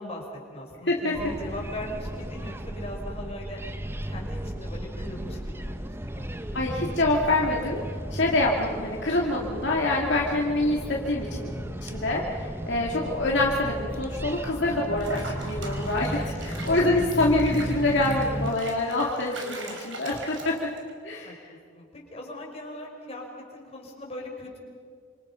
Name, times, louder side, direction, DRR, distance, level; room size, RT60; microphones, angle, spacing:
voice 1, 0.0-3.6 4.0-6.3 10.7-10.8 16.1-16.9 19.6-19.8 21.2-23.3 23.5-24.6, left 1 dB, 30° left, -1 dB, 5.4 m, -40 dB
sound 1, 1.1-18.5, right 1 dB, 10° right, 0.8 m, -35 dB
voice 2, 6.5-7.8 8.1-10.8 11.1-11.5 11.8-20.5 21.0-21.5, left 2 dB, 55° left, -2 dB, 2.5 m, -26 dB
Water / Bathtub (filling or washing), 15.0-20.9, right 2 dB, 65° right, 4.8 m, -41 dB
28.0 x 27.0 x 5.8 m, 2.1 s
head